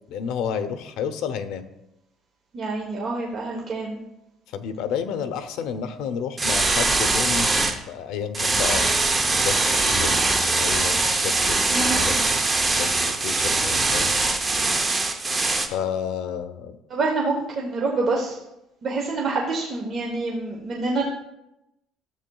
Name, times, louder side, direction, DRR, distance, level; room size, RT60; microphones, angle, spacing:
voice 1, 0.1-1.6 4.5-8.9 9.4-12.1 12.7-14.1 15.7-16.8, left 7 dB, 65° left, 9 dB, 0.7 m, -31 dB
voice 2, 2.5-4.0 11.7-12.3 16.9-18.4 18.8-21.1, right 3 dB, 35° right, -1 dB, 0.9 m, -27 dB
sound 1, 6.4-7.7 8.3-15.7, right 3 dB, 15° right, 0.6 m, -22 dB
13.5 x 7.7 x 2.3 m, 0.90 s
cardioid pair, 175°, 0 cm